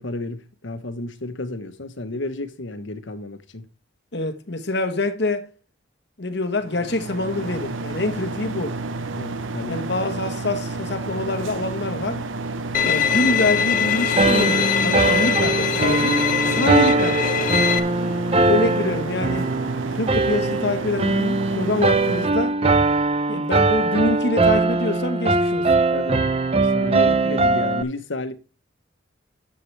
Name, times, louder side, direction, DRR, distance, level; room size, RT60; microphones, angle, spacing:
voice 1, 0.0-3.7 9.1-9.8 16.5-16.7 18.4-18.6 25.9-26.3 26.7-28.3, left 2 dB, 80° left, 1.1 m, -32 dB
voice 2, 4.1-5.5 6.2-8.8 9.7-12.2 12.8-17.7 18.5-19.5 19.9-22.5 23.3-25.8, left 2 dB, 60° left, 1.3 m, -25 dB
sound 1, 6.6-22.3, right 3 dB, 85° right, 0.8 m, -30 dB
Bowed string instrument, 12.7-17.8, left 7 dB, 45° left, 0.8 m, -22 dB
sound 2, 14.2-27.8, right 3 dB, 30° right, 0.6 m, -21 dB
12.0 x 7.5 x 3.3 m
head